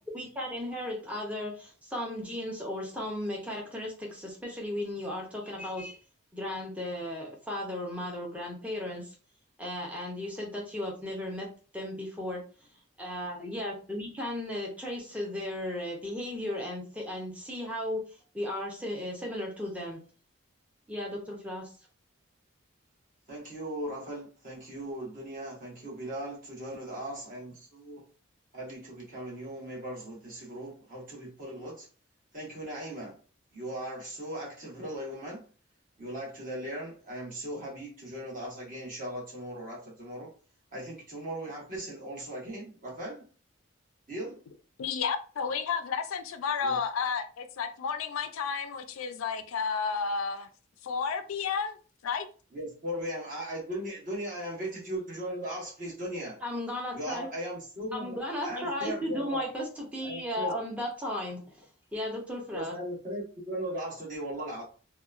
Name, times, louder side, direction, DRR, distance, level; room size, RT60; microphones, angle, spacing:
voice 1, 0.1-6.0 6.3-9.1 9.6-11.5 11.7-12.4 13.0-18.0 18.3-20.0 20.9-21.7 56.4-57.3 57.9-61.4 61.9-62.7, left 1 dB, 5° right, 0.6 m, -35 dB
voice 2, 23.3-28.0 28.5-31.9 32.3-33.2 33.5-35.4 36.0-40.3 40.7-43.2 44.1-44.3 46.6-46.8 52.5-56.4 56.9-59.4 60.0-60.5 62.5-64.6, right 1 dB, 40° right, 1.1 m, -38 dB
voice 3, 44.8-50.5 50.8-51.8 52.0-52.3, left 6 dB, 85° left, 0.4 m, -31 dB
2.8 x 2.2 x 2.4 m
head